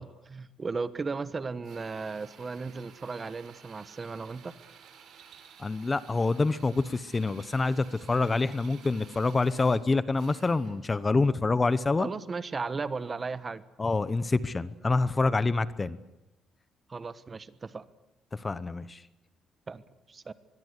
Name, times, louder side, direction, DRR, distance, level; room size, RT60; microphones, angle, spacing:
voice 1, 0.0-4.5 12.0-13.6 16.9-17.9 19.7-20.3, right 4 dB, 25° right, 15 dB, 1.2 m, -36 dB
Drill, 1.6-10.9, right 7 dB, 65° right, 4.7 m, -54 dB
voice 2, 5.6-12.1 13.8-16.0 18.3-19.0, left 3 dB, 20° left, 16 dB, 0.9 m, -26 dB
25.0 x 22.0 x 8.2 m, 0.95 s
cardioid pair, 130°, 0 cm